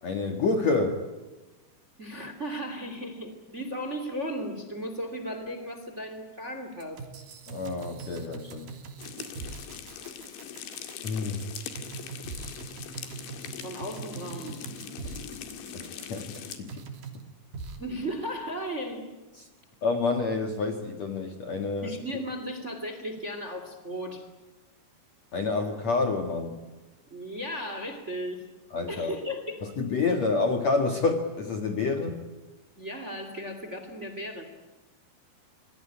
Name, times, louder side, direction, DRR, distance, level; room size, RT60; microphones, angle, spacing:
voice 1, 0.0-1.0 7.5-8.7 11.0-11.5 15.7-16.9 19.8-21.9 25.3-26.6 28.7-29.1 29.6-32.2, left 3 dB, 50° left, 5 dB, 2.5 m, -28 dB
voice 2, 2.0-7.0 13.6-14.6 17.8-19.1 21.8-24.2 27.1-28.4 28.9-29.8 32.8-34.4, equal, 20° right, 8 dB, 2.4 m, -35 dB
sound 1, 6.8-17.2 17.5-17.8, right 5 dB, 55° right, 4.5 m, -41 dB
sound 2, 9.0-16.6, left 8 dB, 85° left, 4.4 m, -41 dB
26.5 x 21.0 x 10.0 m, 1.1 s
omnidirectional pair, 5.0 m